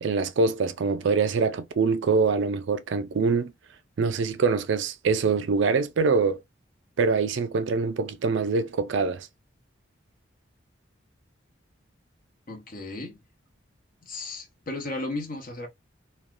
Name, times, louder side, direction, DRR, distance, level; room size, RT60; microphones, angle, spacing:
voice 1, 0.0-3.5 4.0-6.4 7.0-9.3, right 4 dB, 65° right, 0.4 m, -24 dB
voice 2, 12.5-13.2 14.0-15.7, left 2 dB, 45° left, 1.0 m, -35 dB
3.2 x 2.2 x 2.4 m
head